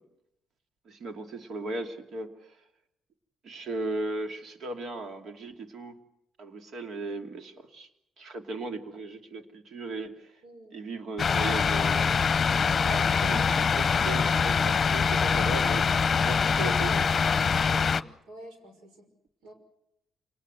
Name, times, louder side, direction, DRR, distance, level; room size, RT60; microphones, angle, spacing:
voice 1, 0.9-2.3 3.4-6.0 6.4-7.9 8.2-10.3 10.7-12.2 12.9-17.1, right 2 dB, 65° right, 6 dB, 2.8 m, -37 dB
voice 2, 10.4-10.8 17.7-19.1 19.4-19.5, right 1 dB, 90° right, 6 dB, 5.8 m, -48 dB
sound 1, 11.2-18.0, left 6 dB, 40° left, 0.9 m, -24 dB
28.0 x 19.5 x 7.9 m, 0.80 s
cardioid pair, 90°, 0 cm